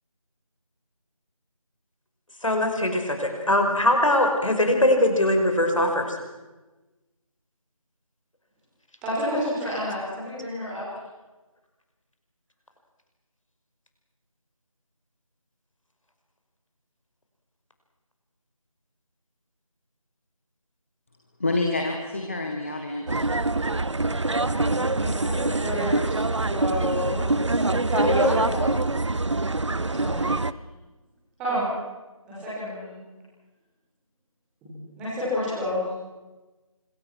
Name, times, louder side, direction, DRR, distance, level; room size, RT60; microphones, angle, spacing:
voice 1, 2.4-6.2, left 1 dB, 65° left, 4 dB, 5.4 m, -21 dB
voice 2, 9.0-10.8 24.3-28.8 29.9-30.3 31.4-31.7 32.2-33.0 34.6-35.8, left 1 dB, 5° right, -10 dB, 5.6 m, -29 dB
voice 3, 21.4-23.2, left 2 dB, 20° left, 2 dB, 1.6 m, -27 dB
sound 1, 23.1-30.5, right 2 dB, 55° right, 0.8 m, -25 dB
25.5 x 23.0 x 6.3 m, 1.2 s
figure-of-eight pair, 170°, 18 cm